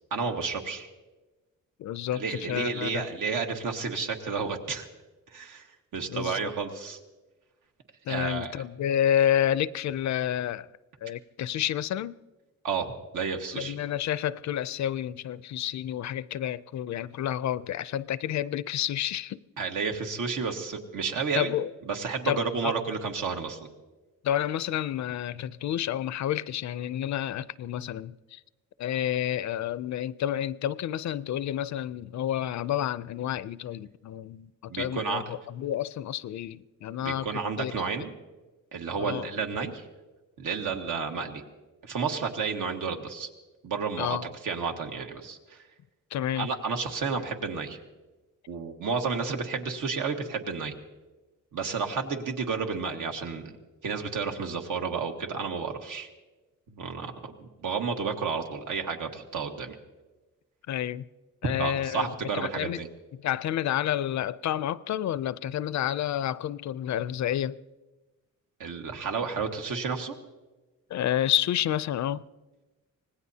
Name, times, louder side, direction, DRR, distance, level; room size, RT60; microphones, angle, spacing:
voice 1, 0.1-0.9 2.1-4.9 5.3-7.0 8.1-8.6 12.6-13.8 19.6-21.5 21.8-23.6 34.7-35.2 37.0-38.1 38.7-39.8 40.4-41.4 41.8-43.3 43.6-44.2 44.4-45.6 46.4-47.8 48.5-50.7 51.5-53.5 53.8-56.1 56.7-57.1 57.4-59.8 61.6-62.9 68.6-70.1, right 5 dB, 80° right, 1.6 m, -31 dB
voice 2, 1.8-2.9 6.1-6.5 8.1-10.7 11.0-12.2 13.5-19.4 21.3-21.7 22.2-22.7 24.2-28.4 28.8-37.3 37.6-37.7 39.0-39.3 44.0-44.3 46.1-46.5 60.7-61.0 61.4-62.1 62.3-62.8 63.1-67.6 70.9-72.2, left 11 dB, 65° left, 0.5 m, -29 dB
25.5 x 19.0 x 2.8 m
wide cardioid pair, 135°, 31 cm